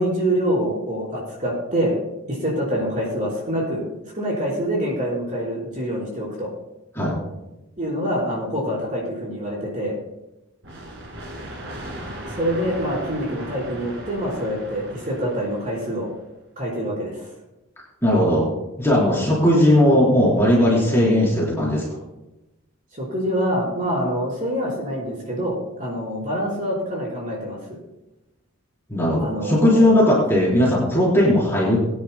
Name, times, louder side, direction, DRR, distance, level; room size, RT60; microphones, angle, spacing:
voice 1, 0.0-2.0 2.3-3.8 4.1-6.5 7.8-10.0 12.4-16.1 16.6-17.3 22.9-27.6 29.2-29.9, equal, 35° right, -5 dB, 4.2 m, -25 dB
sound 1, 10.6-16.2, right 1 dB, 55° right, 2.1 m, -37 dB
voice 2, 18.0-18.5 18.8-21.8 28.9-31.8, left 1 dB, 10° left, -6 dB, 4.0 m, -17 dB
22.5 x 9.9 x 2.2 m, 0.96 s
head